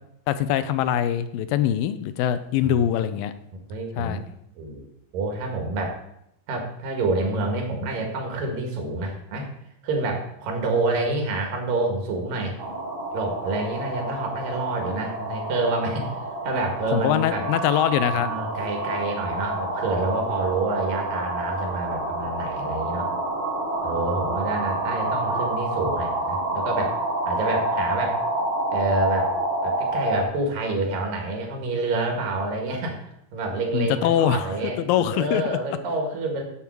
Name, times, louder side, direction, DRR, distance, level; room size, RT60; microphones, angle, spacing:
voice 1, 0.3-3.3 4.0-4.2 16.9-18.3 33.7-34.5 34.8-35.6, left 10 dB, 80° left, 12 dB, 2.3 m, -23 dB
voice 2, 3.7-4.2 4.6-4.9 5.1-5.9 6.5-9.5 9.8-12.6 13.1-17.4 18.1-23.1 23.8-27.0 27.3-28.2 28.7-29.4 29.6-36.4, right 2 dB, 75° right, 2 dB, 3.4 m, -28 dB
sound 1, 12.6-30.2, right 2 dB, 50° right, 1.6 m, -28 dB
11.0 x 7.1 x 4.6 m, 0.78 s
omnidirectional pair, 4.1 m